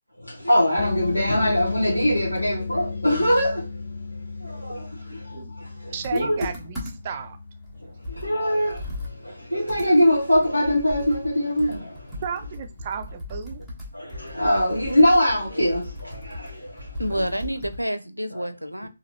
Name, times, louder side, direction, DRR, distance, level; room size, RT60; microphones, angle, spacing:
voice 1, 0.4-3.6 4.7-4.8 6.1-6.5 8.2-8.8 9.5-11.9 13.9-15.9 17.2-17.3, equal, 90° left, 1.0 m, -21 dB
sound 1, 0.8-12.1, left 4 dB, 40° left, 0.3 m, -35 dB
voice 2, 5.1-5.5 5.9-7.4 12.2-13.6 17.1-17.2, right 7 dB, 30° right, 0.5 m, -34 dB
Computer keyboard, 6.0-7.2 7.6-7.7 8.0-17.9, left 2 dB, ahead, 1.1 m, -38 dB
voice 3, 17.0-18.9, equal, 90° right, 0.5 m, -28 dB
4.1 x 2.8 x 2.8 m
figure-of-eight pair, 145°, 0 cm